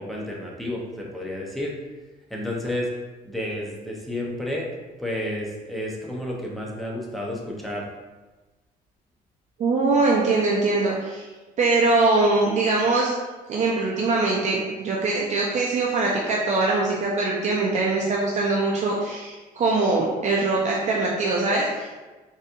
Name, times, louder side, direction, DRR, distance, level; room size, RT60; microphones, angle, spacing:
voice 1, 0.0-1.7 2.3-2.9 3.2-4.7 5.0-7.9, left 1 dB, ahead, -3 dB, 0.7 m, -31 dB
voice 2, 9.6-11.3 11.6-13.2 13.5-21.9, right 3 dB, 45° right, -3 dB, 0.5 m, -22 dB
4.0 x 2.8 x 2.5 m, 1.2 s
cardioid pair, 110°, 17 cm